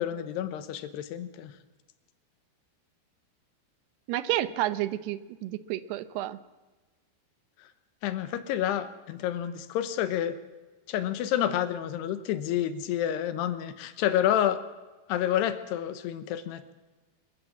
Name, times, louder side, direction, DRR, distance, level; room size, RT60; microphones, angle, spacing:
voice 1, 0.0-1.5 8.0-10.4 10.9-14.6 15.1-16.7, left 11 dB, 80° left, 11 dB, 3.1 m, -29 dB
voice 2, 4.1-6.4, right 14 dB, 80° right, 14 dB, 2.6 m, -30 dB
24.5 x 14.5 x 7.5 m, 1.2 s
omnidirectional pair, 4.9 m